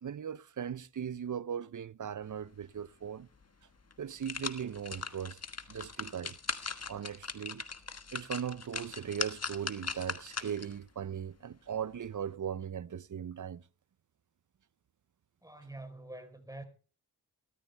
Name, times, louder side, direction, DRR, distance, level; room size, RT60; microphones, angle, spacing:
voice 1, 0.0-3.3 4.0-5.4 5.7-6.4 6.9-7.6 8.1-13.6, right 8 dB, 55° right, 0.6 m, -38 dB
sound 1, 3.4-3.5 3.9-10.8 11.2-11.3, left 4 dB, 45° left, 1.4 m, -40 dB
voice 2, 15.4-16.6, right 2 dB, 10° right, 4.0 m, -46 dB
17.5 x 13.5 x 3.4 m
cardioid pair, 55°, 37 cm